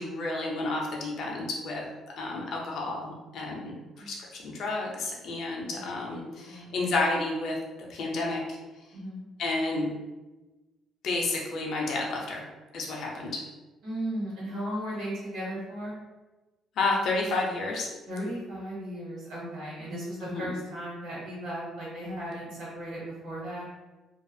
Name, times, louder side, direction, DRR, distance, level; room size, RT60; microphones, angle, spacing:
voice 1, 0.0-1.9 2.2-7.6 7.9-8.6 9.4-9.9 11.0-12.4 12.7-13.4 16.8-17.9 20.2-20.5, left 2 dB, 50° left, -1 dB, 0.5 m, -31 dB
voice 2, 6.4-6.8 8.9-9.2 13.8-16.0 18.1-23.6, equal, 75° right, -8 dB, 1.1 m, -36 dB
2.3 x 2.3 x 2.6 m, 1.1 s
cardioid pair, 165°, 0 cm